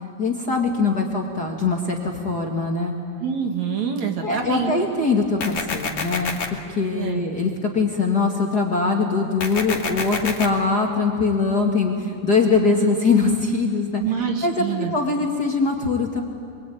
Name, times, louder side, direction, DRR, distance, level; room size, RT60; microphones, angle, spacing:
voice 1, 0.2-2.9 4.2-6.4 6.8-14.0 14.4-14.5 14.9-16.2, left 4 dB, 35° left, 0 dB, 2.0 m, -22 dB
voice 2, 3.2-4.7 6.9-7.2 14.0-14.9, right 7 dB, 55° right, 4 dB, 2.9 m, -26 dB
sound 1, 5.4-6.5 9.4-10.5, left 5 dB, 55° left, 3.3 m, -27 dB
27.0 x 23.0 x 9.4 m, 2.4 s
omnidirectional pair, 4.0 m